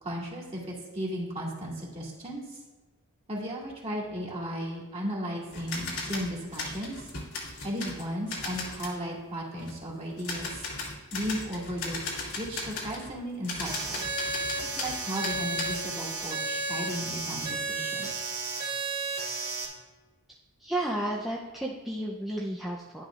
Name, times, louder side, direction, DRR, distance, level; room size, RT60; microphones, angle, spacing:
voice 1, 0.0-2.6 3.3-7.1 7.6-10.6 11.1-12.0 12.4-14.1 14.7-18.1, equal, 30° right, -4 dB, 2.3 m, -35 dB
sound 1, 5.5-9.0 9.6-9.7 10.2-13.2 13.4-15.8 16.2-17.0, left 3 dB, 75° left, 2.2 m, -37 dB
sound 2, 13.6-19.6, right 3 dB, 45° right, 2.8 m, -33 dB
voice 2, 20.6-23.0, right 1 dB, ahead, -5 dB, 0.7 m, -32 dB
11.0 x 10.5 x 2.6 m, 1.3 s
head